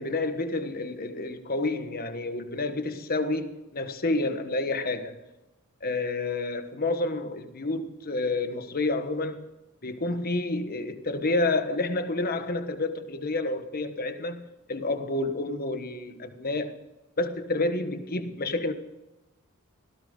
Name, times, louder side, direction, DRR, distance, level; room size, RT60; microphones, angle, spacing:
voice 1, 0.0-5.2 5.8-9.4 9.8-16.8 17.2-18.7, left 2 dB, 45° left, 1.4 m, -29 dB
18.0 x 17.0 x 4.0 m
head